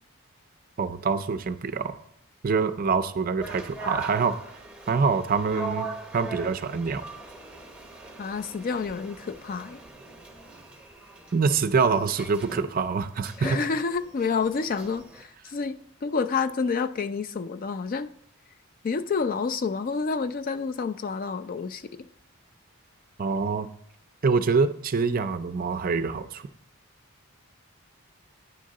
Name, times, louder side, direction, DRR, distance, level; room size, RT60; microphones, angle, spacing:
voice 1, 0.8-2.0 2.4-4.4 4.9-5.9 6.1-7.1 11.3-13.6 23.2-23.7 24.2-26.4, right 5 dB, 40° right, 11 dB, 0.4 m, -25 dB
sound 1, 3.4-15.2, right 3 dB, 5° right, 0.8 m, -40 dB
voice 2, 8.2-9.8 13.4-18.1 18.8-22.1, left 5 dB, 40° left, 11 dB, 0.3 m, -29 dB
9.4 x 3.8 x 6.3 m, 0.68 s
head